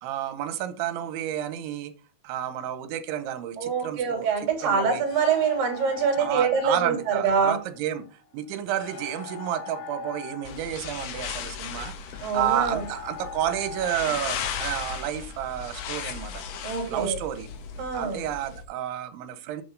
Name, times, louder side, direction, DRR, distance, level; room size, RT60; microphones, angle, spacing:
voice 1, 0.0-1.9 2.2-4.3 4.6-5.0 6.2-8.1 8.3-16.4 16.9-17.5 17.9-19.6, right 11 dB, 85° right, 3.3 m, -31 dB
voice 2, 3.6-7.6 12.2-12.8 16.6-17.2 17.8-18.2, right 6 dB, 50° right, 4.4 m, -25 dB
sound 1, 4.4-16.2, left 6 dB, 90° left, 4.3 m, -43 dB
sound 2, 10.4-18.6, left 7 dB, 70° left, 2.9 m, -36 dB
8.5 x 7.4 x 3.9 m
omnidirectional pair, 5.2 m